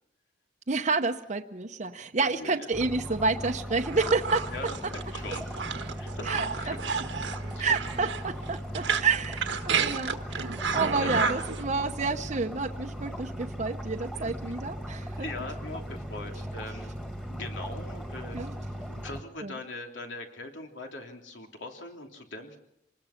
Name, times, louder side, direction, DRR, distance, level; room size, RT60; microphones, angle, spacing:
voice 1, 0.7-4.4 6.3-6.8 7.6-15.3 18.3-18.5 19.4-19.6, right 4 dB, 40° right, 5 dB, 0.8 m, -29 dB
voice 2, 2.2-2.7 4.5-5.5 6.0-7.0 7.5-7.7 11.0-11.3 13.1-13.2 14.1-14.6 15.2-16.9 17.3-18.5 18.9-22.6, left 2 dB, 85° left, 2 dB, 3.1 m, -41 dB
sound 1, 2.7-19.2, equal, 5° left, 1.8 m, -38 dB
sound 2, 2.8-6.3 6.6-7.2 8.3-9.6 10.5-11.1, equal, 65° left, 5.5 m, -59 dB
sound 3, 3.8-11.6, right 5 dB, 80° right, 1.4 m, -31 dB
26.0 x 20.0 x 5.8 m, 0.81 s
head